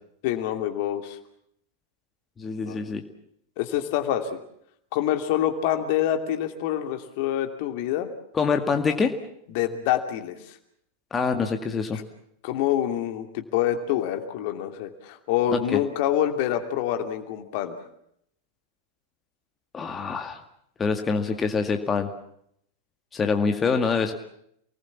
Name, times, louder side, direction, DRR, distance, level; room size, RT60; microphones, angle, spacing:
voice 1, 0.2-1.2 2.6-2.9 3.6-4.4 4.9-8.1 9.5-10.6 12.4-17.8, left 11 dB, 50° left, 6 dB, 2.7 m, -26 dB
voice 2, 2.4-3.0 8.3-9.1 11.1-12.0 15.5-15.8 19.7-20.4 20.8-22.1 23.1-24.1, left 5 dB, 20° left, 5 dB, 2.1 m, -25 dB
29.0 x 20.0 x 7.3 m, 0.73 s
figure-of-eight pair, 90°, 0 cm